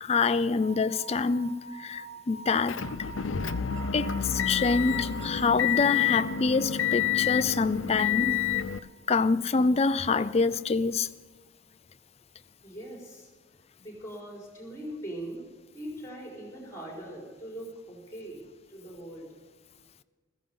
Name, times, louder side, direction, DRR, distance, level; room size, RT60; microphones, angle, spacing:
voice 1, 0.0-2.8 3.9-8.4 9.1-11.1, left 4 dB, 30° left, 0.4 m, -26 dB
sound 1, 0.6-10.1, right 4 dB, 75° right, 2.2 m, -45 dB
Motor vehicle (road) / Engine, 2.7-8.8, left 10 dB, 90° left, 0.6 m, -28 dB
voice 2, 12.6-13.3 13.8-15.4 15.7-18.4 18.7-19.3, right 1 dB, 15° left, 4.6 m, -41 dB
15.0 x 15.0 x 5.5 m
head